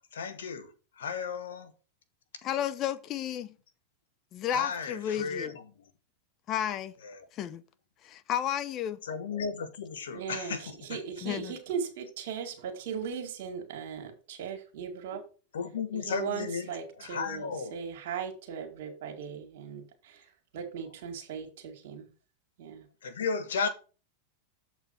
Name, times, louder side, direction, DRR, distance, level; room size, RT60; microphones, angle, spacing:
voice 1, 0.1-0.7 1.0-1.7 4.5-5.5 7.0-7.2 9.1-11.0 15.5-16.7 17.0-17.7 23.0-23.7, left 5 dB, 85° left, 1.2 m, -34 dB
voice 2, 2.4-3.5 4.3-5.6 6.5-6.9 7.3-7.6 8.0-9.0 11.2-11.6, left 10 dB, 40° left, 0.7 m, -32 dB
voice 3, 10.1-15.2 15.9-20.2 20.5-22.1 22.6-22.9, right 6 dB, 70° right, 2.0 m, -38 dB
7.4 x 4.4 x 5.6 m
hypercardioid pair, 110°, 0 cm